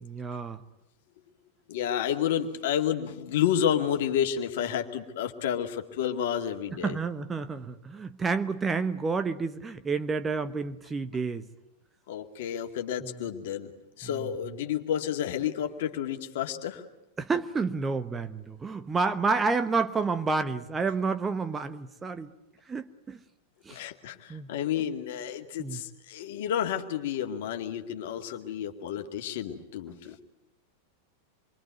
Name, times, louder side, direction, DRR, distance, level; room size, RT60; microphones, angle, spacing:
voice 1, 0.0-0.6 6.8-11.5 13.0-13.1 17.2-22.3 22.7-23.2 23.6-23.8 24.3-24.5 25.6-25.8, right 4 dB, 15° right, 10 dB, 1.1 m, -29 dB
voice 2, 1.7-7.0 12.1-13.7 14.0-16.8 23.7-30.2, left 9 dB, 55° left, 4 dB, 2.2 m, -30 dB
27.0 x 23.5 x 9.3 m, 0.88 s
figure-of-eight pair, 90°, 0 cm